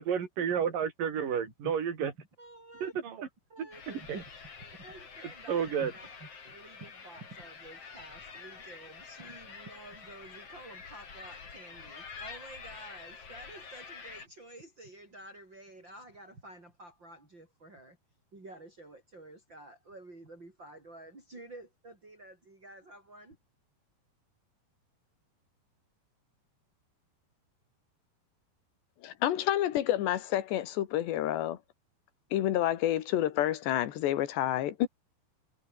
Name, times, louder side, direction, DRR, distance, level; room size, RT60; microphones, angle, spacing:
voice 1, 0.0-2.1 2.8-3.3 3.6-4.2 5.5-5.9, right 7 dB, 55° right, 4.8 m, -31 dB
voice 2, 2.4-3.0 3.5-4.2 4.6-18.0 18.3-23.4, right 1 dB, 25° right, 7.4 m, -50 dB
sound 1, 3.7-14.3, left 5 dB, 35° left, 4.1 m, -48 dB
voice 3, 29.0-31.6 32.3-34.9, left 12 dB, 80° left, 3.9 m, -29 dB
omnidirectional pair, 4.9 m